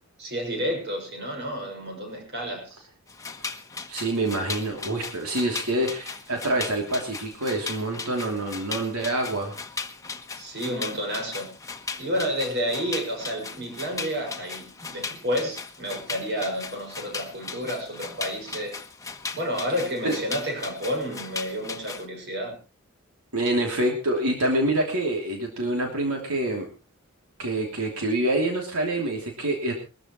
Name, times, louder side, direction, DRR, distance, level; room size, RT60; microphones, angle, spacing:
voice 1, 0.2-2.9 10.4-11.5 12.0-18.8 19.3-22.6, equal, 50° right, 2 dB, 6.3 m, -30 dB
sound 1, 3.1-22.1, left 4 dB, 15° left, 1.2 m, -37 dB
voice 2, 3.9-9.6 20.0-20.2 23.3-26.7 27.4-29.7, right 1 dB, 90° right, 1 dB, 3.0 m, -26 dB
22.5 x 13.5 x 3.1 m, 0.32 s
head